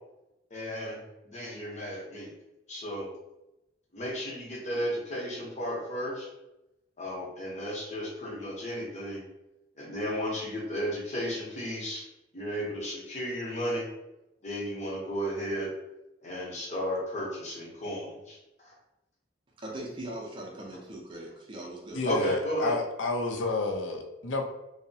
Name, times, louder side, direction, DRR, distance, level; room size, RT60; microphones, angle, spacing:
voice 1, 0.5-2.3 2.7-3.1 3.9-6.3 7.0-9.2 9.8-12.0 12.3-13.9 14.4-15.7 16.2-18.8 22.0-22.8, equal, 40° left, -3 dB, 0.7 m, -34 dB
voice 2, 19.6-22.2, right 1 dB, 25° right, -3 dB, 0.5 m, -40 dB
voice 3, 21.9-24.4, left 2 dB, 80° left, 3 dB, 0.4 m, -30 dB
2.7 x 2.0 x 2.6 m, 0.94 s
head